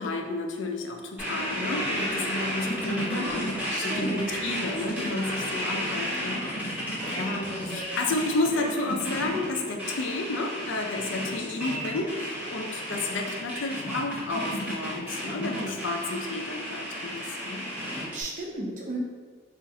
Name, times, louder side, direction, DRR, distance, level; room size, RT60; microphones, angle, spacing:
voice 1, 0.0-17.7, left 2 dB, 80° left, 3 dB, 0.4 m, -31 dB
sound 1, 1.2-18.2, equal, 10° right, 0.7 m, -32 dB
voice 2, 3.7-4.3 17.6-17.8 18.1-19.0, right 2 dB, 40° right, -1 dB, 0.5 m, -34 dB
3.9 x 2.4 x 2.6 m, 1.5 s
head